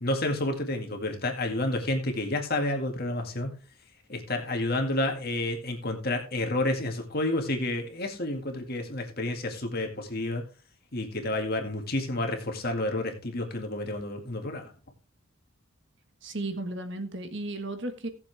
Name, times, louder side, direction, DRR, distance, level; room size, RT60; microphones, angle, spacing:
voice 1, 0.0-3.5 4.1-10.4 10.9-14.7, left 1 dB, 45° left, 3 dB, 2.0 m, -30 dB
voice 2, 16.2-18.1, right 2 dB, 55° right, 8 dB, 1.4 m, -34 dB
18.0 x 7.2 x 3.4 m, 0.33 s
head